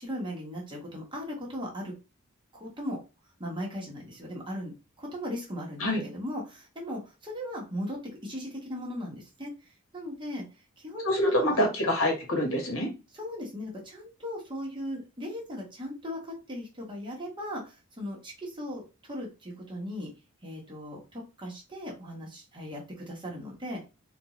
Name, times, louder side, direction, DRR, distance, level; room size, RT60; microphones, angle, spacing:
voice 1, 0.0-1.9 2.5-3.0 3.4-9.5 9.9-10.4 10.8-11.4 13.1-20.1 20.4-23.9, equal, 25° right, -2 dB, 1.2 m, -38 dB
voice 2, 11.0-12.9, left 1 dB, 75° left, 1 dB, 1.4 m, -26 dB
3.8 x 2.6 x 3.0 m, 0.29 s
head